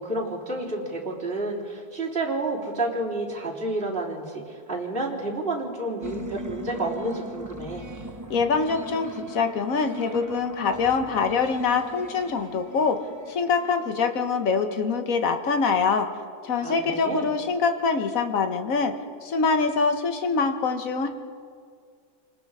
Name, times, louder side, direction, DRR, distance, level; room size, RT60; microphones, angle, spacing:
voice 1, 0.0-4.4 4.7-7.9 16.6-17.3, right 2 dB, 35° right, -5 dB, 3.8 m, -30 dB
sound 1, 6.0-15.0, right 1 dB, 15° right, 0.7 m, -40 dB
voice 2, 8.3-13.0 13.3-16.1 16.4-18.9 19.2-21.1, left 5 dB, 60° left, 6 dB, 1.7 m, -24 dB
29.0 x 20.0 x 4.9 m, 2.1 s
omnidirectional pair, 1.7 m